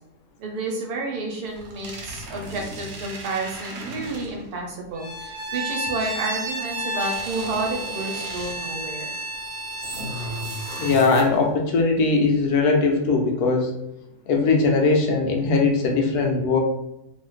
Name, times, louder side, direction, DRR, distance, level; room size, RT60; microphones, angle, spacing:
voice 1, 0.4-9.1, right 2 dB, 85° right, 0 dB, 1.4 m, -30 dB
sound 1, 1.4-4.6 7.0-8.8 9.8-11.6, right 1 dB, 70° right, 1.2 m, -36 dB
Bowed string instrument, 5.0-11.0, right 1 dB, 40° right, 0.5 m, -32 dB
voice 2, 10.8-13.8 14.3-16.6, left 3 dB, 80° left, 2 dB, 1.2 m, -20 dB
3.1 x 2.4 x 3.1 m, 0.88 s
omnidirectional pair, 1.6 m